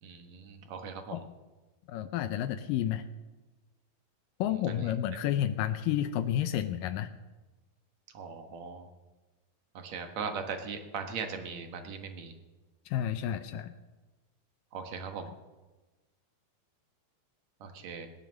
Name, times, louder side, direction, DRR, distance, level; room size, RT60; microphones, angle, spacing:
voice 1, 0.0-1.2 4.7-4.9 8.1-8.9 9.7-12.3 14.7-15.3 17.6-18.1, right 5 dB, 60° right, 5 dB, 2.3 m, -39 dB
voice 2, 1.9-3.1 4.4-7.1 12.9-13.7, left 11 dB, 80° left, 9 dB, 2.2 m, -30 dB
19.0 x 10.5 x 6.3 m, 1.2 s
omnidirectional pair, 4.2 m